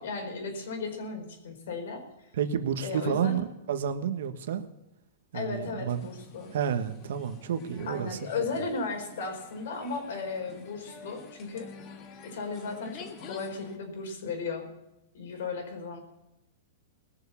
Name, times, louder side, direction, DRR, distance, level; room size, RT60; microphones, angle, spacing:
voice 1, 0.0-2.0 2.8-3.4 5.3-6.5 7.9-11.7 12.2-14.7 15.1-16.0, left 4 dB, 65° left, 4 dB, 4.9 m, -35 dB
voice 2, 2.3-4.7 5.3-6.0 6.5-8.2, right 8 dB, 65° right, 8 dB, 1.4 m, -30 dB
sound 1, 5.9-13.8, left 5 dB, 30° left, 1.5 m, -49 dB
20.0 x 7.2 x 7.1 m, 0.90 s
supercardioid pair, 160°, 0 cm